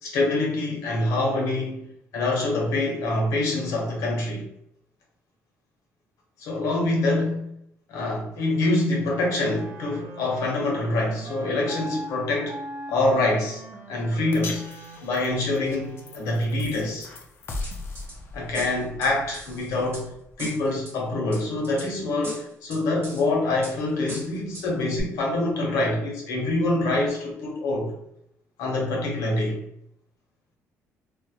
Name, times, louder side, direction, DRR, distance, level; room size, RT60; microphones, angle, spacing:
voice 1, 0.0-1.9 2.1-4.4 6.4-7.4 7.9-12.5 12.9-13.6 13.9-14.6 15.0-17.1 18.3-20.1 20.4-27.9 28.6-29.6, left 2 dB, 80° left, -1 dB, 0.8 m, -25 dB
Wind instrument woodwind instrument, 9.1-16.6, right 2 dB, 70° right, 0.5 m, -41 dB
sound 1, 14.3-20.7, left 2 dB, 45° left, 0.4 m, -40 dB
sound 2, 17.6-18.1 18.5-20.0 20.4-20.9 21.3-21.9 22.2-23.2 23.6-23.7 24.1-24.7 25.0-25.1, right 1 dB, 45° right, 0.9 m, -39 dB
2.3 x 2.0 x 2.7 m, 0.75 s
cardioid pair, 130°, 5 cm